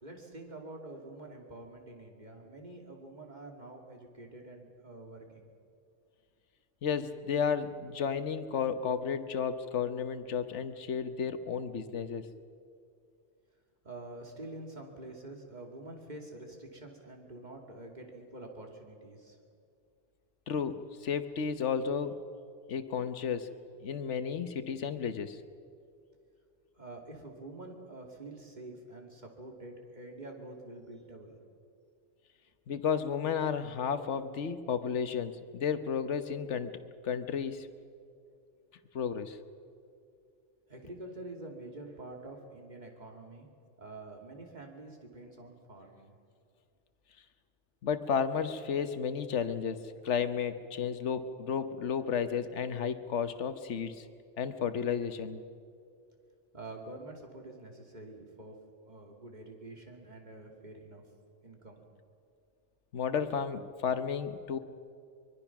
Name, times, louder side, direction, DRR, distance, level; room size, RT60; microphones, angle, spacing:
voice 1, 0.0-5.5 13.8-19.4 26.8-31.4 40.7-43.5 43.8-46.2 56.5-58.6 58.9-61.0 61.4-61.8, right 2 dB, 35° right, 1 dB, 2.8 m, -47 dB
voice 2, 6.8-12.3 20.5-22.2 22.7-23.5 23.8-25.4 32.7-36.7 37.0-37.7 38.9-39.4 47.8-54.1 54.4-55.4 62.9-64.6, left 7 dB, 70° left, 10 dB, 1.3 m, -32 dB
24.0 x 22.5 x 6.0 m, 2.3 s
omnidirectional pair, 1.2 m